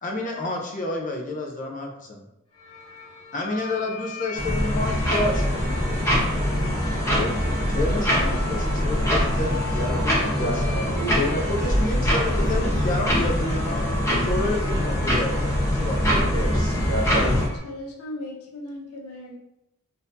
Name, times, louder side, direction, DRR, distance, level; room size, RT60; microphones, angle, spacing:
voice 1, 0.0-2.2 3.3-5.6 7.1-7.3 7.6-10.6 11.2-13.9 14.2-16.3, left 2 dB, 35° left, 1 dB, 0.6 m, -29 dB
sound 1, 2.5-17.6, left 2 dB, 70° left, 1.3 m, -39 dB
sound 2, 4.4-17.5, equal, 15° left, 0.8 m, -23 dB
voice 2, 10.4-11.3 16.3-17.5, right 1 dB, 40° right, -3 dB, 0.9 m, -30 dB
voice 3, 17.6-19.4, left 1 dB, 90° left, -1 dB, 0.7 m, -37 dB
3.9 x 2.7 x 2.6 m, 0.84 s
head